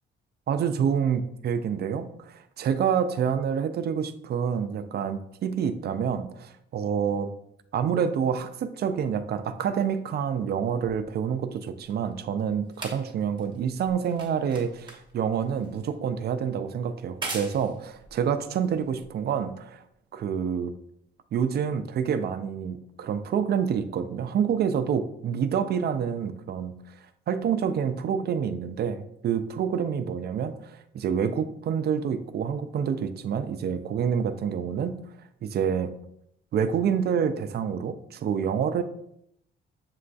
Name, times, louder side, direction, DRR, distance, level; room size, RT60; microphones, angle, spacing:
voice 1, 0.5-7.3 7.7-19.8 20.1-20.7 21.3-26.8 27.3-35.0 35.4-35.9 36.5-38.8, right 7 dB, 55° right, 10 dB, 0.4 m, -27 dB
sound 1, 11.0-19.5 20.3-20.4, right 2 dB, 25° right, 1.1 m, -43 dB
7.4 x 2.5 x 2.3 m, 0.74 s
cardioid pair, 90°, 20 cm